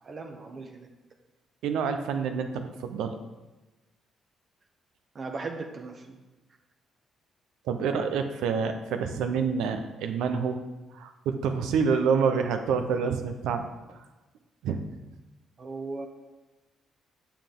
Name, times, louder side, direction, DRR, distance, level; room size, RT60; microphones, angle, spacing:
voice 1, 0.0-0.9 5.1-6.2 15.6-16.1, right 3 dB, 45° right, 2 dB, 1.0 m, -37 dB
voice 2, 1.6-3.2 7.7-10.6 10.9-14.0 14.6-14.8, right 6 dB, 85° right, 7 dB, 0.8 m, -27 dB
8.7 x 7.1 x 3.8 m, 1.1 s
cardioid pair, 90°, 0 cm